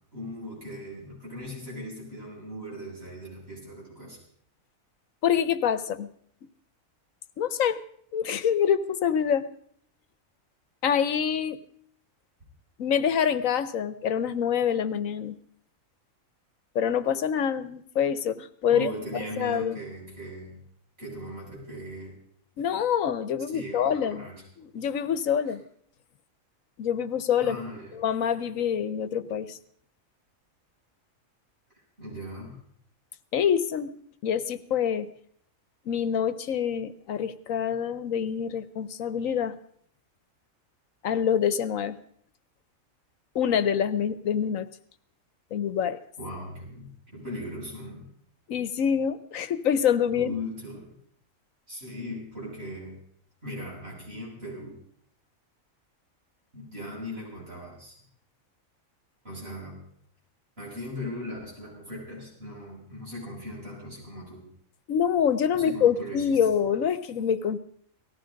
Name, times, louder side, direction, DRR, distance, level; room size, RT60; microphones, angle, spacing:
voice 1, 0.1-4.2 18.7-20.6 21.0-22.2 23.5-24.4 25.5-25.6 27.4-28.0 32.0-32.6 46.2-48.0 50.1-50.9 51.7-53.0 53.4-54.8 56.5-58.0 59.2-59.8 60.6-64.5 65.5-66.4, equal, 45° right, -5 dB, 7.8 m, -38 dB
voice 2, 5.2-6.1 7.4-7.8 8.1-9.4 10.8-11.6 12.8-15.4 16.7-18.9 19.4-19.8 22.6-24.3 24.7-25.6 26.8-27.6 27.9-29.6 33.3-33.9 34.2-35.1 35.9-39.6 41.0-42.0 43.3-44.7 45.5-46.0 48.5-50.3 64.9-67.6, left 8 dB, 75° left, 14 dB, 1.3 m, -26 dB
19.0 x 14.5 x 5.2 m, 0.64 s
omnidirectional pair, 1.4 m